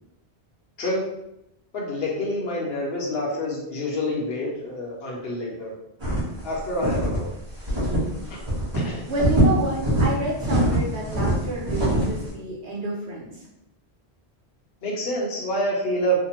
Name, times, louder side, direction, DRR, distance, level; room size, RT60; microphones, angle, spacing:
voice 1, 1.7-5.7 6.4-7.3 8.3-8.4 8.7-9.0 14.8-16.2, equal, 65° left, -2 dB, 0.9 m, -27 dB
sound 1, 6.0-6.4 6.8-7.2 7.7-8.2 8.4-8.8 9.1-10.1 10.4-12.2, right 1 dB, 25° right, 1.2 m, -22 dB
voice 2, 9.1-13.4, right 2 dB, 80° right, -3 dB, 1.1 m, -29 dB
2.7 x 2.1 x 2.9 m, 0.83 s
omnidirectional pair, 1.1 m